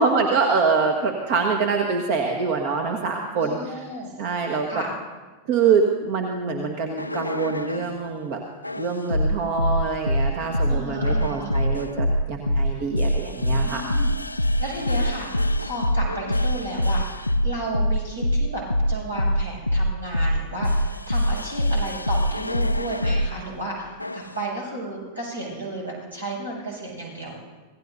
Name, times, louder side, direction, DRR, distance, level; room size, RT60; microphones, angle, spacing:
voice 1, 0.0-3.9 4.2-4.7 5.5-8.4 8.8-13.9, right 5 dB, 50° right, 2 dB, 1.4 m, -24 dB
voice 2, 3.3-4.1 4.7-4.9 10.6-11.5 13.6-14.1 14.6-18.6 18.9-27.4, right 1 dB, 80° right, -3 dB, 6.7 m, -33 dB
sound 1, 7.0-8.0 8.6-23.3 24.0-24.4, equal, 85° left, 0.4 m, -24 dB
26.0 x 17.0 x 2.7 m, 1.3 s
figure-of-eight pair, 90°, 0 cm